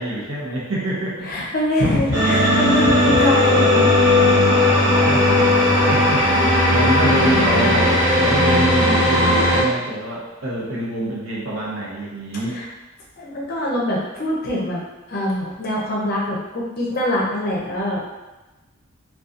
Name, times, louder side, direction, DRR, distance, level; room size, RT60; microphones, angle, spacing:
voice 1, 0.0-1.3 4.2-5.4 5.9-12.6, right 1 dB, 65° right, -5 dB, 0.7 m, -26 dB
voice 2, 1.2-3.9 4.7-5.3 7.1-7.7 12.5-12.7 13.2-14.8 15.1-18.1, left 1 dB, 45° left, -4 dB, 0.5 m, -24 dB
sound 1, 2.1-9.6, left 1 dB, 35° right, 0.8 m, -16 dB
2.6 x 2.2 x 2.5 m, 1.1 s
head